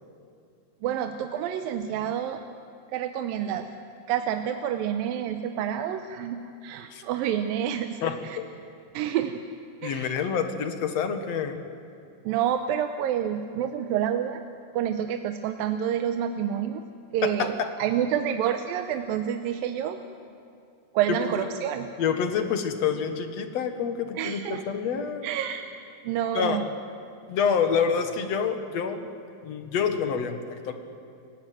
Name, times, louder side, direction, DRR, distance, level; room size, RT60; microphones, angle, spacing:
voice 1, 0.8-2.4 2.9-3.8 4.1-8.4 8.9-9.4 9.8-10.2 12.2-14.4 14.7-16.8 17.1-20.0 20.9-21.9 24.2-24.6 25.2-25.6 26.0-26.7, right 9 dB, 85° right, 7 dB, 2.5 m, -28 dB
voice 2, 9.8-11.6 17.2-17.5 21.4-21.5 22.0-25.3 26.3-26.6 27.3-29.1 29.4-30.7, left 6 dB, 55° left, 7 dB, 2.3 m, -27 dB
29.5 x 16.5 x 9.2 m, 2.4 s
omnidirectional pair, 4.1 m